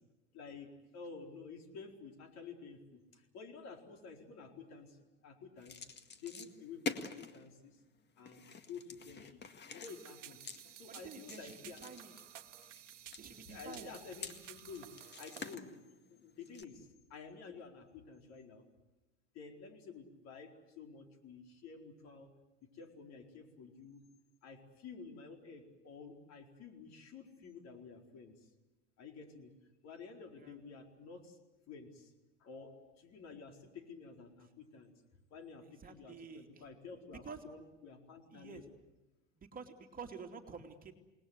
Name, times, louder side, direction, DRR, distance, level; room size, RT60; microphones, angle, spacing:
voice 1, 0.3-0.7 0.9-5.9 6.2-7.8 8.2-9.4 9.7-10.4 10.7-11.8 13.4-14.9 15.2-18.7 19.3-22.3 22.7-24.0 24.4-28.5 29.0-29.5 29.8-31.4 31.7-32.1 32.4-34.9 35.3-38.6, left 5 dB, 45° left, 3 dB, 4.4 m, -51 dB
sound 1, 5.6-7.5 8.3-16.6, left 5 dB, 30° left, 1.9 m, -47 dB
sound 2, 9.9-15.5, right 11 dB, 85° right, 1.0 m, -54 dB
voice 2, 10.9-12.1 13.2-13.9 30.4-30.6 35.6-36.6 37.2-37.4 38.3-38.6 39.4-40.9, right 5 dB, 25° right, 3 dB, 2.8 m, -50 dB
29.0 x 19.5 x 8.1 m, 1.0 s
hypercardioid pair, 85°, 36 cm